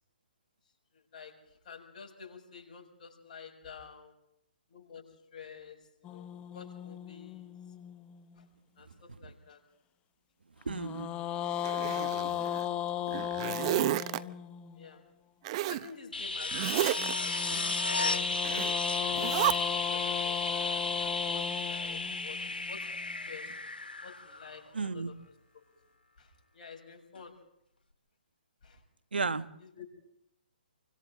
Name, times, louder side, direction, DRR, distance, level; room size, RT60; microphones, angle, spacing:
voice 1, 0.9-1.4 1.6-4.1 4.7-7.6 8.4-8.5 8.8-9.6 14.1-14.4 14.7-15.0 15.7-18.7 19.2-22.9 23.3-23.6 24.0-25.2 25.5-25.6 26.2-27.4 28.6-28.8 29.6-29.9, left 6 dB, 50° left, 3 dB, 7.5 m, -50 dB
sound 1, 6.0-8.4 10.7-14.9 17.0-23.2, left 11 dB, 20° left, 0.8 m, -37 dB
voice 2, 10.7-11.1 24.7-25.1 29.1-29.4, right 4 dB, 80° right, 11 dB, 1.4 m, -33 dB
Zipper (clothing), 11.6-12.6 13.1-14.2 15.4-15.9 16.5-17.1 18.4-18.7 19.1-19.5, right 16 dB, 35° right, 0.7 m, -31 dB
sound 2, 16.1-24.8 27.2-27.3, left 3 dB, 85° left, 2.1 m, -33 dB
30.0 x 25.0 x 3.8 m, 0.76 s
figure-of-eight pair, 135°, 5 cm